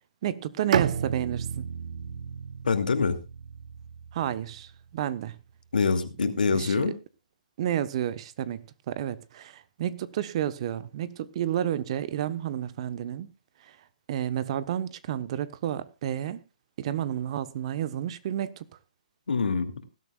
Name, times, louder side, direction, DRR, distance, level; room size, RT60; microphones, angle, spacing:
voice 1, 0.2-1.6 4.1-5.4 6.5-6.8 7.6-13.3 13.6-13.8 14.1-16.4 16.8-18.6, right 10 dB, 45° right, 1.1 m, -31 dB
Bowed string instrument, 0.7-4.6, right 8 dB, 60° right, 0.8 m, -32 dB
voice 2, 2.6-3.2 5.7-6.9 19.3-19.7, left 5 dB, 90° left, 2.6 m, -25 dB
20.0 x 12.5 x 2.4 m
hypercardioid pair, 150°, 5 cm